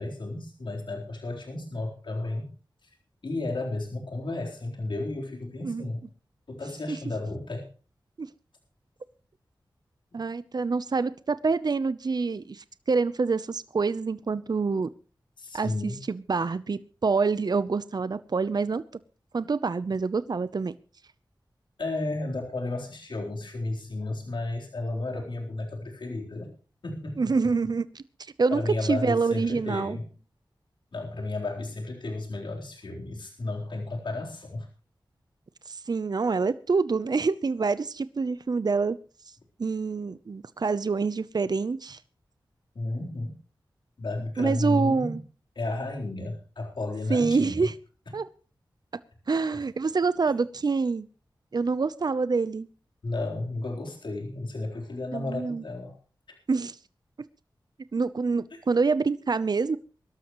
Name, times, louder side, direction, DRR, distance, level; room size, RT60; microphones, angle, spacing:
voice 1, 0.0-2.5 2.8-2.9 3.2-6.0 6.5-7.7 10.1-10.2 15.4-16.0 21.8-26.5 26.8-27.3 28.5-30.1 30.9-34.7 42.7-43.3 44.0-45.2 45.6-47.7 53.0-56.0, left 2 dB, 75° left, -1 dB, 3.9 m, -33 dB
voice 2, 10.1-14.9 15.5-18.8 19.3-20.7 27.2-28.0 28.4-30.0 35.7-39.0 39.6-42.0 44.4-45.2 47.1-47.7 48.1-48.3 49.3-51.1 51.5-52.7 55.1-55.6 56.5-56.8 57.9-59.8, right 4 dB, 55° right, 15 dB, 0.7 m, -26 dB
23.0 x 12.5 x 3.1 m, 0.38 s
cardioid pair, 55°, 8 cm